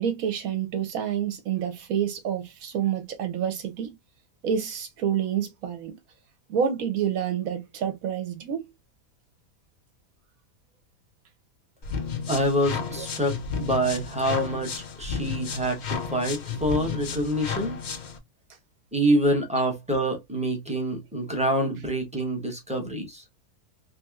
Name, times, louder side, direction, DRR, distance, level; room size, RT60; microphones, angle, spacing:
voice 1, 0.0-3.9 4.4-6.0 6.5-8.7 12.9-13.1, right 8 dB, 65° right, 1.2 m, -28 dB
sound 1, 11.8-18.2, left 6 dB, 65° left, 0.4 m, -32 dB
voice 2, 12.3-17.8 18.9-23.2, right 1 dB, 5° right, 0.7 m, -26 dB
3.4 x 2.8 x 2.3 m
omnidirectional pair, 1.6 m